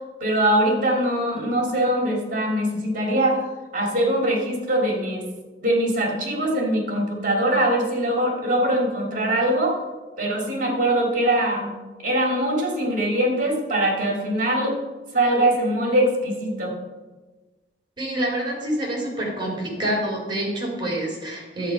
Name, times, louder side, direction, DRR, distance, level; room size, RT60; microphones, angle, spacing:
voice 1, 0.2-3.4 3.7-5.2 5.6-9.8 10.2-11.7 12.0-14.7 15.1-16.7, right 1 dB, 50° right, 0 dB, 2.7 m, -22 dB
voice 2, 18.0-21.7, right 1 dB, 25° right, -3 dB, 3.7 m, -27 dB
11.0 x 8.0 x 5.5 m, 1.3 s
head